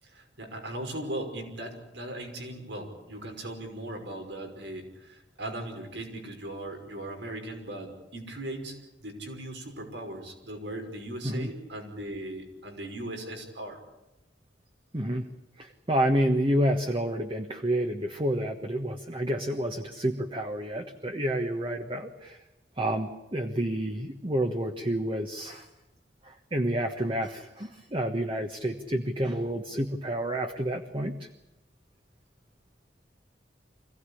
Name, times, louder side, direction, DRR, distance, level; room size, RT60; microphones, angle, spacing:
voice 1, 0.0-13.8, right 1 dB, 75° right, 3 dB, 5.7 m, -38 dB
voice 2, 14.9-15.3 15.6-22.4 22.8-25.7 26.2-31.3, right 1 dB, 30° right, 4 dB, 1.3 m, -29 dB
26.0 x 17.0 x 10.0 m, 0.96 s
head